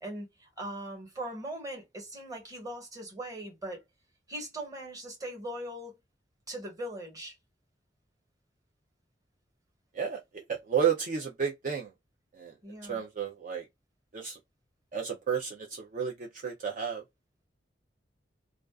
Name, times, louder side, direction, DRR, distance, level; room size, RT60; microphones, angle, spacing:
voice 1, 0.0-3.8 4.3-6.0 6.5-7.3 12.6-13.0, right 1 dB, 20° right, 1.1 m, -40 dB
voice 2, 10.5-11.9 12.3-12.5 12.8-13.6 14.1-14.4 14.9-17.0, right 7 dB, 45° right, 0.5 m, -32 dB
2.4 x 2.3 x 2.3 m
head